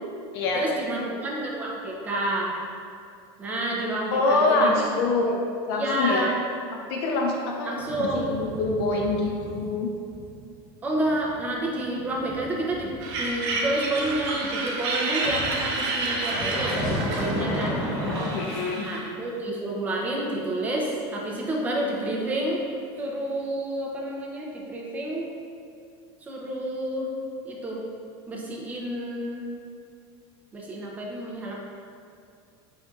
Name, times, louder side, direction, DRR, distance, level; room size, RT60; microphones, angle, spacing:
voice 1, 0.5-2.6 3.4-4.9 5.7-6.4 7.6-8.3 10.8-12.9 13.2-17.8 18.8-22.6 23.0-25.3 26.2-27.1 27.4-27.8 28.3-29.4 30.5-31.5, right 1 dB, 10° right, -3 dB, 0.4 m, -29 dB
voice 2, 4.1-6.3 6.7-7.7 8.1-9.9 18.3-18.9, left 3 dB, 85° left, 0 dB, 0.4 m, -25 dB
sound 1, 7.8-9.7 10.0-10.3 10.7-14.3 15.2-18.3, equal, 5° left, 0.9 m, -33 dB
sound 2, 13.0-19.1, right 2 dB, 90° right, 0.6 m, -30 dB
5.0 x 2.5 x 2.3 m, 2.4 s
cardioid pair, 165°, 13 cm